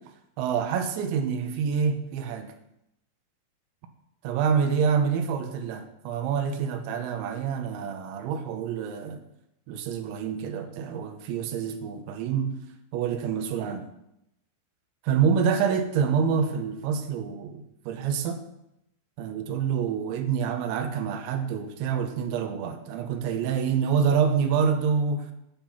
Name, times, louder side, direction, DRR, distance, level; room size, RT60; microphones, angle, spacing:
voice 1, 0.4-2.5 4.2-9.2 9.7-12.6 12.9-13.9 15.0-18.4 19.2-25.3, right 7 dB, 80° right, 7 dB, 3.1 m, -27 dB
9.1 x 7.6 x 5.8 m, 0.82 s
omnidirectional pair, 5.6 m